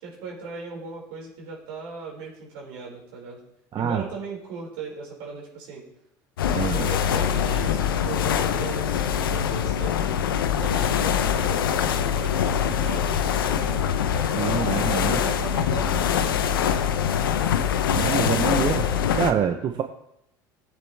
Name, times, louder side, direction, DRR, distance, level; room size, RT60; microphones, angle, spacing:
voice 1, 0.0-3.4 3.8-5.8 6.5-10.0 10.6-13.8 14.1-17.3, right 4 dB, 75° right, -3 dB, 5.6 m, -38 dB
voice 2, 3.7-4.0 6.6-6.9 14.3-15.2 17.9-18.9 19.1-19.8, right 8 dB, 40° right, 5 dB, 1.0 m, -25 dB
sound 1, 6.4-19.3, left 8 dB, 90° left, 0.8 m, -23 dB
17.5 x 8.9 x 3.5 m, 0.78 s
hypercardioid pair, 80°, 11 cm